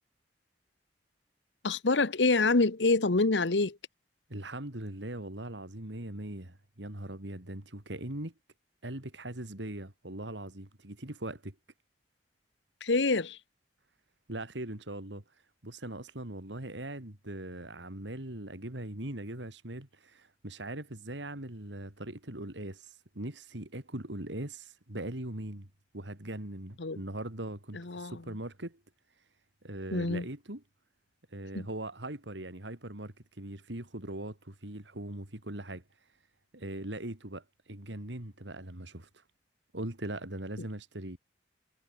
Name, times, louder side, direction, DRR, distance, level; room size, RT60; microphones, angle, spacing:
voice 1, 1.6-3.8 12.8-13.4 26.8-27.0 27.7-28.2 29.9-30.2 31.5-31.7, left 3 dB, 75° left, 1.1 m, -26 dB
voice 2, 4.3-8.3 8.8-11.5 14.3-25.7 25.9-28.8 29.6-30.6 31.3-36.1 36.5-39.2 39.7-41.2, right 1 dB, 75° right, 3.4 m, -40 dB
head